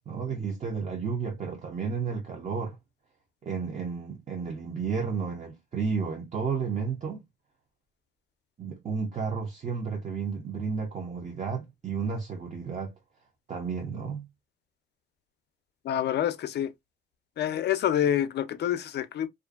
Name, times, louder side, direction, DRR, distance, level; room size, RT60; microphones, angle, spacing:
voice 1, 0.1-2.8 3.4-7.2 8.6-12.9 13.5-14.3, right 5 dB, 35° right, 0.6 m, -32 dB
voice 2, 15.8-16.7 17.4-19.3, left 10 dB, 60° left, 0.4 m, -27 dB
2.5 x 2.4 x 2.3 m
cardioid pair, 90°, 20 cm